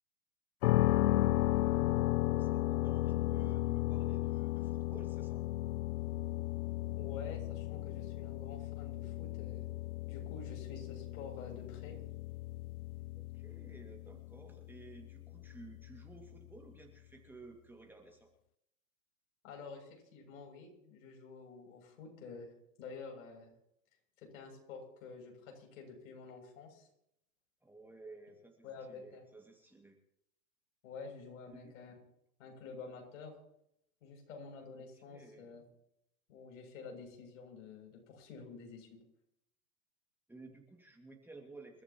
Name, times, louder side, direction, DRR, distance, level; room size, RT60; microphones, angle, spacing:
sound 1, 0.6-16.5, left 16 dB, 85° left, 0.5 m, -35 dB
voice 1, 1.8-5.4 13.1-18.3 27.6-30.0 31.5-31.8 34.8-35.5 40.3-41.8, right 3 dB, 5° right, 1 dB, 2.3 m, -55 dB
voice 2, 6.9-9.6 10.1-11.9 19.4-23.5 24.2-26.9 28.6-29.2 30.8-31.9 32.4-33.3 34.0-35.7 36.3-39.0, left 4 dB, 65° left, 1 dB, 7.5 m, -49 dB
28.5 x 13.5 x 3.1 m, 0.76 s
hypercardioid pair, 120°, 43 cm